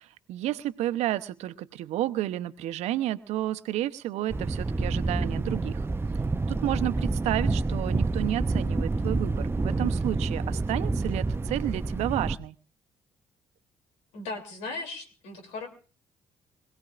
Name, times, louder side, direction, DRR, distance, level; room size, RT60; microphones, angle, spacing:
voice 1, 0.0-5.9 6.5-12.5, right 14 dB, 70° right, 11 dB, 0.8 m, -31 dB
Thunder, 4.3-12.4, right 3 dB, 20° right, 0.7 m, -28 dB
voice 2, 14.1-15.7, left 3 dB, 75° left, 6 dB, 3.2 m, -37 dB
25.0 x 17.0 x 2.5 m, 0.38 s
hypercardioid pair, 50°, 12 cm